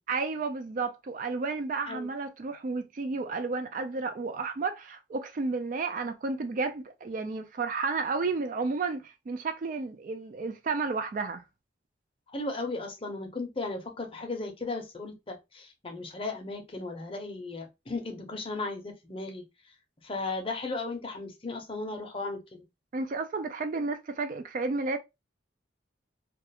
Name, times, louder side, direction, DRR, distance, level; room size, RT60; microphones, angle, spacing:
voice 1, 0.1-11.4 22.9-25.0, right 4 dB, 45° right, 0.3 m, -32 dB
voice 2, 12.3-19.5 20.0-22.6, left 3 dB, 30° left, 0.6 m, -36 dB
2.4 x 2.3 x 2.8 m
head